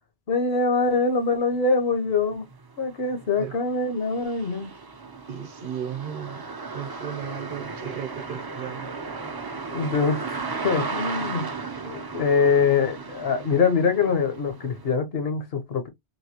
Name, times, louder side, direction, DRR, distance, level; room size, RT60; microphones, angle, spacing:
voice 1, 0.3-2.4 2.8-4.7 9.7-10.2 10.6-11.5 11.8-15.9, left 4 dB, 70° left, 1.1 m, -23 dB
sound 1, 1.5-1.6 2.1-15.0, right 4 dB, 35° right, 0.4 m, -35 dB
voice 2, 5.3-6.4 6.7-8.9, right 8 dB, 60° right, 0.9 m, -35 dB
3.1 x 2.7 x 2.8 m
omnidirectional pair, 1.1 m